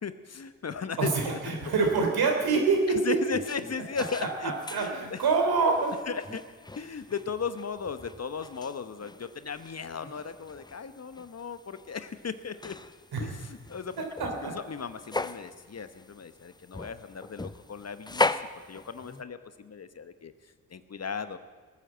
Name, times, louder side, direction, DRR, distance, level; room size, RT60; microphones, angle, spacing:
voice 1, 0.0-1.4 2.9-4.5 4.8-5.2 6.1-6.4 6.7-12.8 13.2-14.0 14.2-18.4 18.7-21.4, left 6 dB, 40° left, 12 dB, 1.1 m, -36 dB
voice 2, 1.0-3.2 4.2-5.9 13.1-13.2 14.0-14.5, right 4 dB, 70° right, 2 dB, 3.5 m, -26 dB
sound 1, 1.5-19.2, left 2 dB, 10° left, 0.6 m, -39 dB
18.5 x 9.2 x 7.5 m, 1.5 s
hypercardioid pair, 45°, 39 cm